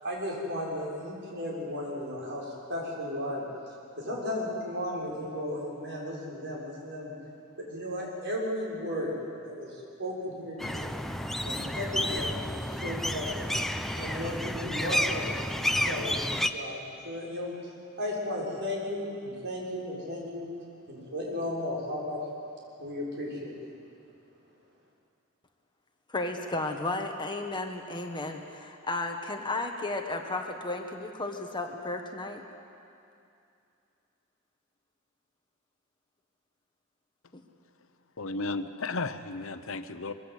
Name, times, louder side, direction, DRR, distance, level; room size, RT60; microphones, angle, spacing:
voice 1, 0.0-3.4 4.0-7.1 7.6-11.0 11.4-13.3 14.0-15.2 15.5-17.7 18.0-20.5 20.9-22.2 22.8-23.7, left 1 dB, 55° right, -3 dB, 6.6 m, -35 dB
sound 1, 10.6-16.5, left 1 dB, ahead, 0.8 m, -31 dB
voice 2, 26.1-32.4, left 2 dB, 20° left, 3 dB, 1.6 m, -33 dB
voice 3, 38.2-40.1, left 3 dB, 70° left, 10 dB, 1.0 m, -34 dB
23.5 x 23.0 x 8.3 m, 2.6 s
head